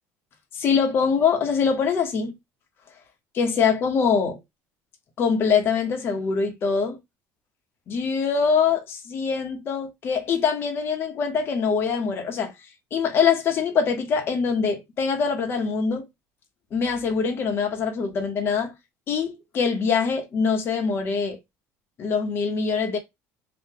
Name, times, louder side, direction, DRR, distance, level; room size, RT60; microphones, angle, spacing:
voice 1, 0.5-2.3 3.3-4.4 5.2-7.0 7.9-12.5 12.9-16.1 16.7-18.7 19.1-21.4 22.0-23.0, left 6 dB, 40° left, 0.8 m, -23 dB
2.9 x 2.2 x 3.6 m
cardioid pair, 140°, 6 cm